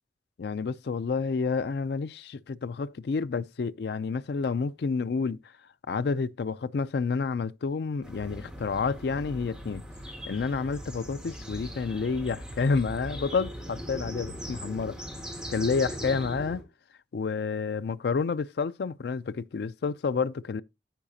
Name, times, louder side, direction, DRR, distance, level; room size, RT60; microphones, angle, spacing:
voice 1, 0.4-5.4 5.9-9.8 10.3-15.0 15.5-16.6 17.1-20.6, left 4 dB, 65° left, 0.4 m, -29 dB
sound 1, 8.0-16.6, equal, 5° right, 3.3 m, -40 dB
13.5 x 5.0 x 2.7 m
head